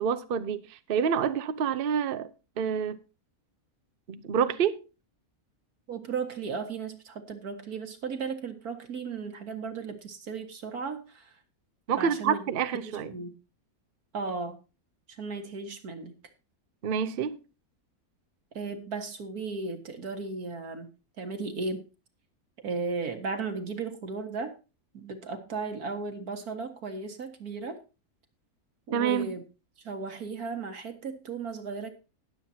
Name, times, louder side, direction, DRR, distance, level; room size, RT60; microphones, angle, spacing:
voice 1, 0.0-2.3 2.6-3.0 4.1-4.8 11.9-13.1 16.8-17.4 28.9-29.4, right 7 dB, 50° right, 0.7 m, -28 dB
voice 2, 5.9-11.3 12.0-12.5 12.8-13.4 14.1-14.6 15.2-16.2 18.6-20.9 21.2-21.8 22.6-24.5 24.9-27.8 28.9-29.4 29.8-31.9, right 4 dB, 90° right, 2.1 m, -35 dB
19.5 x 7.4 x 2.8 m
omnidirectional pair, 1.5 m